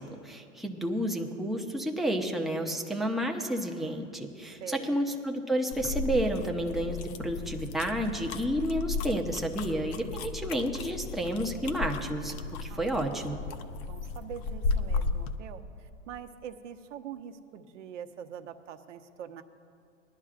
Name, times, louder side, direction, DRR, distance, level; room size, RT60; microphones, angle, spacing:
voice 1, 0.0-12.3 12.6-13.4, equal, ahead, 1 dB, 0.6 m, -31 dB
voice 2, 4.6-5.1 12.7-19.4, right 8 dB, 70° right, 8 dB, 1.0 m, -44 dB
sound 1, 5.7-15.4, left 3 dB, 35° left, 0.7 m, -35 dB
20.5 x 11.0 x 2.5 m, 2.4 s
hypercardioid pair, 130°, 37 cm